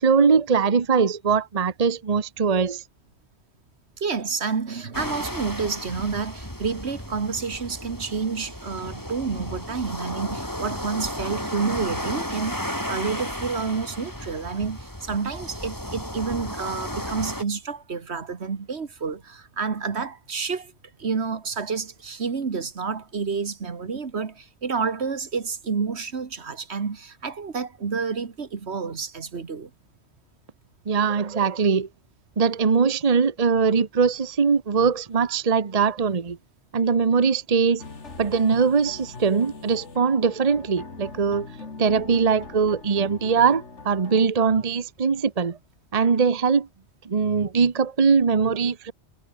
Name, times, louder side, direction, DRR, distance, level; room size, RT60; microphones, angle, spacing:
voice 1, 0.0-2.8 30.9-31.9 32.4-36.4 36.7-37.8 38.2-41.5 41.8-45.6 45.9-46.7 47.0-48.9, right 5 dB, 35° right, 1.0 m, -21 dB
voice 2, 4.0-20.7 21.0-29.7, right 5 dB, 70° right, 1.8 m, -29 dB
sound 1, 4.9-17.4, equal, 15° left, 7.4 m, -34 dB
sound 2, 37.8-44.3, left 4 dB, 85° left, 2.8 m, -42 dB
omnidirectional pair, 1.2 m